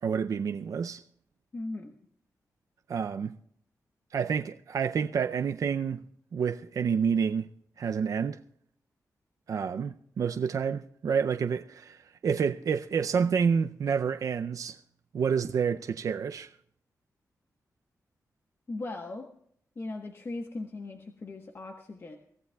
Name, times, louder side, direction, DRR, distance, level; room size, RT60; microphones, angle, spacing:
voice 1, 0.0-1.0 2.9-3.3 4.1-6.0 6.3-7.5 7.8-8.4 9.5-14.8 15.1-16.5, right 6 dB, 65° right, 0.5 m, -29 dB
voice 2, 1.5-1.9 18.7-19.3 19.8-22.2, left 2 dB, 40° left, 1.2 m, -38 dB
23.5 x 15.0 x 2.3 m
wide cardioid pair, 115°, 6 cm